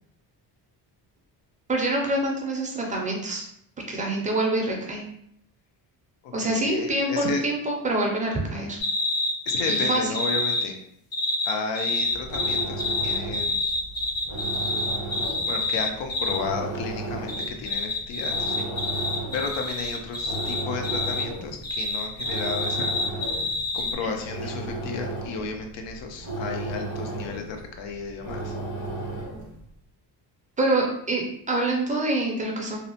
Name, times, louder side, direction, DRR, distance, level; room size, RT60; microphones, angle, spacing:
voice 1, 1.7-3.4 3.9-5.0 6.3-8.8 9.7-10.0 24.0-24.1 30.6-32.8, right 2 dB, 20° right, -1 dB, 0.3 m, -26 dB
voice 2, 6.2-7.5 9.5-10.8 11.5-13.6 15.5-23.4 23.7-28.6, left 5 dB, 90° left, 4 dB, 0.6 m, -33 dB
sound 1, 8.8-10.7 11.1-16.4 17.3-21.3 21.6-23.9, left 2 dB, 40° left, 0.6 m, -27 dB
sound 2, 12.0-29.6, right 2 dB, 65° left, 1.5 m, -35 dB
2.7 x 2.0 x 2.7 m, 0.71 s
cardioid pair, 160°, 42 cm